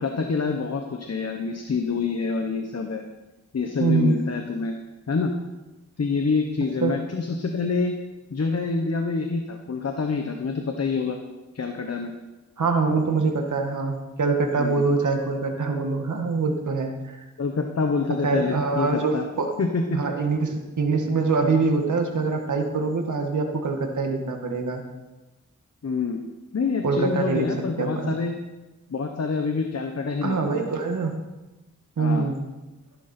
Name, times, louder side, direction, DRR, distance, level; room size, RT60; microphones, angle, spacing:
voice 1, 0.0-3.0 3.5-4.7 5.1-5.3 6.0-8.0 8.3-11.2 11.5-12.1 14.6-14.8 17.4-19.3 19.6-20.0 25.8-26.2 26.5-28.3 28.9-30.7 32.0-32.3, left 4 dB, 55° left, 4 dB, 1.3 m, -26 dB
voice 2, 3.8-4.2 6.8-7.0 12.6-17.2 18.2-19.5 19.9-24.8 26.8-28.1 30.2-31.1 32.0-32.4, right 4 dB, 75° right, 3 dB, 2.0 m, -24 dB
15.0 x 12.0 x 4.5 m, 1.1 s
wide cardioid pair, 75°, 30 cm